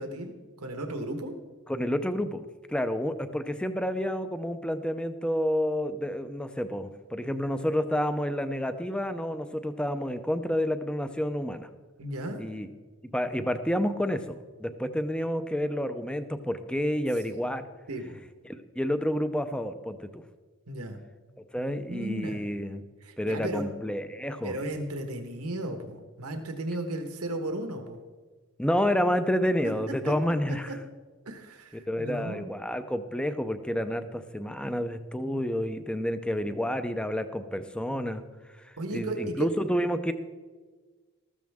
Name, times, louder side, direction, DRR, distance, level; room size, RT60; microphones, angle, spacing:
voice 1, 0.0-1.3 12.0-12.4 17.9-18.2 20.7-21.0 21.5-22.5 23.0-23.6 24.4-28.0 29.6-30.1 30.7-30.8 31.2-32.5 38.8-39.5, right 1 dB, 90° right, 5 dB, 1.4 m, -35 dB
voice 2, 1.7-2.4 2.7-11.7 12.4-12.7 13.1-17.7 18.4-20.2 21.5-22.8 23.2-24.6 28.6-30.8 31.9-38.2 38.6-40.1, equal, 5° left, 10 dB, 0.5 m, -29 dB
14.0 x 13.5 x 3.6 m, 1.4 s
head